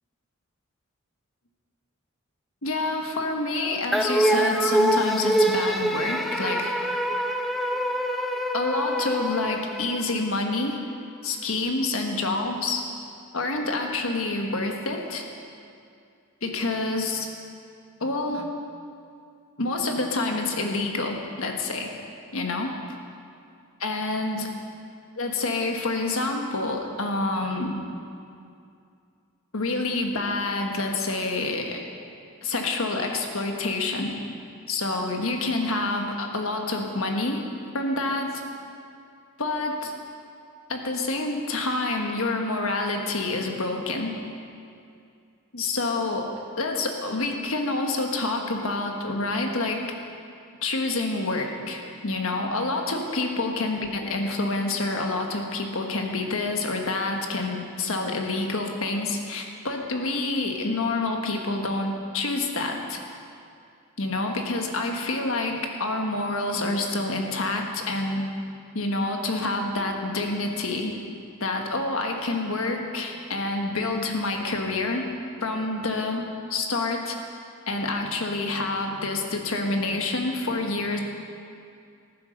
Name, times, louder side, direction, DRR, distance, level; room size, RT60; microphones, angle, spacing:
voice 1, 2.6-6.7 8.5-10.8 11.2-12.8 13.3-15.2 16.4-17.3 18.0-18.5 19.6-21.9 22.3-22.7 23.8-24.5 25.1-27.8 29.5-31.8 32.4-34.1 34.7-37.5 37.7-38.4 39.4-39.9 40.7-44.2 45.5-46.3 46.6-49.8 50.6-63.0 64.0-68.2 68.7-70.9 71.4-75.0 75.4-76.2 76.5-77.2 77.7-81.0, left 2 dB, 70° left, 2 dB, 1.5 m, -27 dB
sound 1, 3.9-10.5, right 1 dB, ahead, 0.5 m, -25 dB
15.0 x 9.5 x 6.6 m, 2.4 s
head